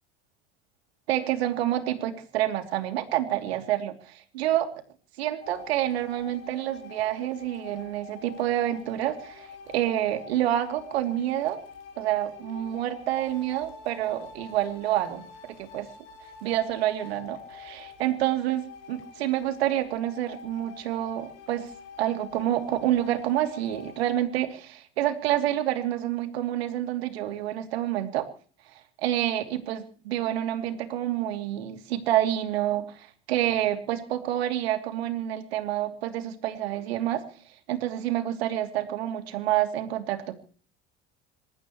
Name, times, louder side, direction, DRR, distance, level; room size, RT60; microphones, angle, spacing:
voice 1, 1.1-4.7 5.2-11.6 12.0-15.9 16.4-21.7 22.0-28.3 29.0-37.2 37.7-40.4, right 12 dB, 80° right, 7 dB, 2.9 m, -28 dB
sound 1, 5.4-24.2, left 6 dB, 55° left, 6.5 m, -47 dB
27.0 x 14.0 x 3.1 m, 0.42 s
hypercardioid pair, 80°, 31 cm